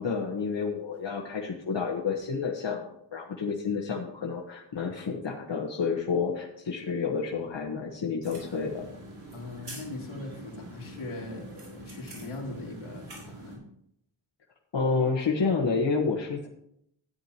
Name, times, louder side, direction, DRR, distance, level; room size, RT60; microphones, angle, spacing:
voice 1, 0.0-2.8 3.1-8.8 14.7-16.5, left 5 dB, 60° left, -1 dB, 1.3 m, -29 dB
sound 1, 8.2-13.6, right 1 dB, 85° right, 5.1 m, -45 dB
voice 2, 9.3-13.6, left 2 dB, 85° left, -2 dB, 2.7 m, -40 dB
14.0 x 9.7 x 3.0 m, 0.74 s
wide cardioid pair, 100°, 48 cm